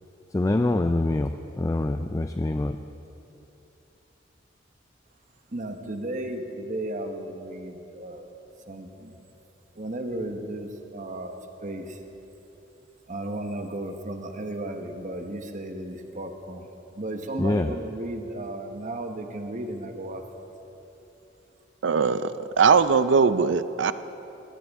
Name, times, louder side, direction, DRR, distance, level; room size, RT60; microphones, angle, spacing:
voice 1, 0.3-2.8 17.4-17.7, left 2 dB, 15° left, 8 dB, 0.3 m, -25 dB
voice 2, 5.5-8.3 8.7-9.1 9.7-12.0 13.1-16.6 16.9-20.2, right 1 dB, 40° right, 5 dB, 1.1 m, -34 dB
voice 3, 21.8-23.9, right 5 dB, 70° right, 13 dB, 0.5 m, -20 dB
20.5 x 16.5 x 3.6 m, 3.0 s
head